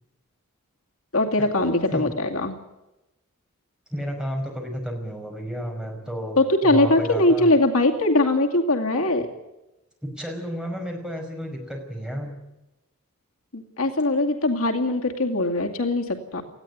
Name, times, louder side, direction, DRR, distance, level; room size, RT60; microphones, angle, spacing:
voice 1, 1.1-2.5 6.4-9.3 13.5-16.4, left 2 dB, 75° left, 3 dB, 2.3 m, -21 dB
voice 2, 3.9-6.4 6.6-7.5 10.0-12.4, equal, 5° right, 1 dB, 5.3 m, -31 dB
19.5 x 15.5 x 9.4 m, 0.95 s
head